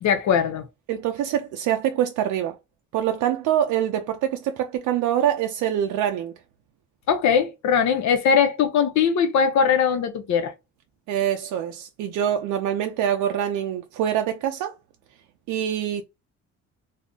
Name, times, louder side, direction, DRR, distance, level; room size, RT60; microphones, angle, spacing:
voice 1, 0.0-0.7 7.1-10.5, left 7 dB, 70° left, 0.6 m, -20 dB
voice 2, 0.9-2.6 2.9-6.3 11.1-14.7 15.5-16.0, right 10 dB, 85° right, 0.5 m, -25 dB
2.4 x 2.1 x 3.5 m
cardioid pair, 90°, 30 cm